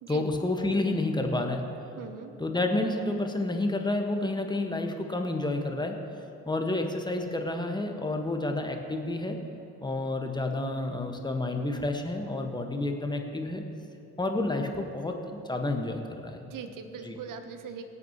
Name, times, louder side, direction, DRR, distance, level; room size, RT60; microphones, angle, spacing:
voice 1, 0.1-1.6 2.4-6.0 6.4-9.4 9.8-13.6 14.2-16.4 17.0-17.2, left 2 dB, 10° left, 4 dB, 1.5 m, -30 dB
voice 2, 2.0-2.3 16.4-17.8, right 6 dB, 55° right, 8 dB, 1.2 m, -41 dB
24.0 x 8.1 x 3.1 m, 3.0 s
figure-of-eight pair, 40°, 39 cm